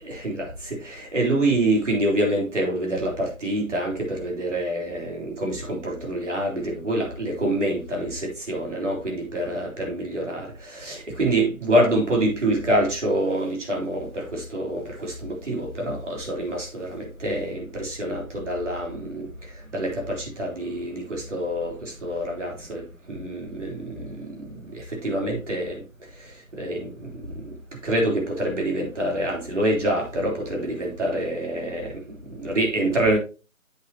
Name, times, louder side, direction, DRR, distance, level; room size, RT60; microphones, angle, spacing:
voice 1, 0.0-19.3 19.7-22.8 23.1-24.4 24.7-25.8 26.5-27.6 27.8-33.2, right 1 dB, 60° right, 3.4 m, -26 dB
8.0 x 7.8 x 2.8 m
figure-of-eight pair, 165°, 41 cm